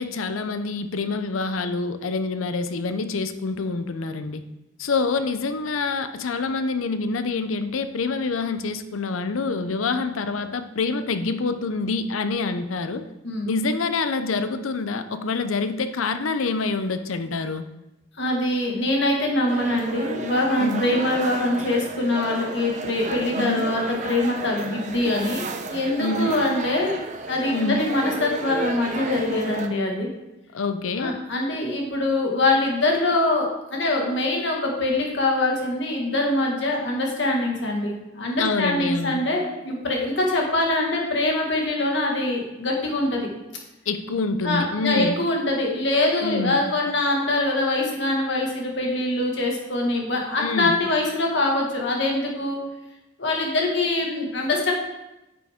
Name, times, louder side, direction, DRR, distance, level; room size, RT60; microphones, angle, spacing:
voice 1, 0.0-4.4 4.8-13.1 13.4-17.7 20.6-21.0 23.4-23.7 26.0-26.4 27.5-27.9 30.5-31.1 38.4-39.2 43.9-45.1 46.2-46.6 50.4-50.8, left 3 dB, 90° left, 10 dB, 0.6 m, -26 dB
voice 2, 18.2-27.0 27.3-30.1 31.0-43.3 44.4-52.6 53.2-54.7, left 2 dB, 60° left, 0 dB, 1.7 m, -24 dB
sound 1, 19.5-29.7, right 3 dB, 35° right, 0.7 m, -33 dB
9.3 x 6.1 x 3.6 m, 0.96 s
head